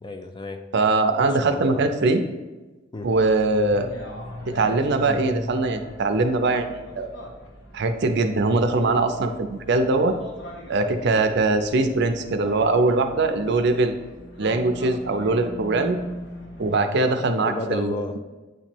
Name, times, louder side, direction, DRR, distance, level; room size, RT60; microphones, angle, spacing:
voice 1, 0.0-0.7 1.2-1.9 2.9-3.1 17.4-18.2, left 1 dB, 20° left, 6 dB, 0.3 m, -33 dB
voice 2, 0.7-2.2 3.0-3.9 4.5-7.1 7.7-10.1 10.7-13.9 14.4-16.0 16.6-18.0, right 3 dB, 55° right, 7 dB, 0.5 m, -22 dB
sound 1, 3.0-16.7, equal, 60° left, 1.3 m, -40 dB
8.9 x 3.0 x 4.4 m, 1.2 s
head